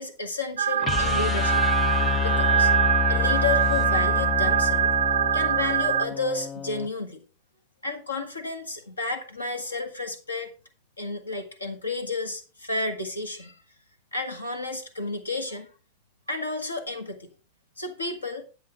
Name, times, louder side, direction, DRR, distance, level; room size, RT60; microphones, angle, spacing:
voice 1, 0.0-1.6 2.2-2.7 3.1-4.9 5.3-7.2 7.8-10.5 11.0-13.6 14.1-15.7 16.3-17.3 17.8-18.5, left 3 dB, 80° left, 7 dB, 1.6 m, -31 dB
sound 1, 0.6-6.1, right 9 dB, 65° right, 0.4 m, -23 dB
sound 2, 0.8-6.9, left 8 dB, 25° left, 0.4 m, -28 dB
10.5 x 8.5 x 3.6 m, 0.35 s
figure-of-eight pair, 90°, 0 cm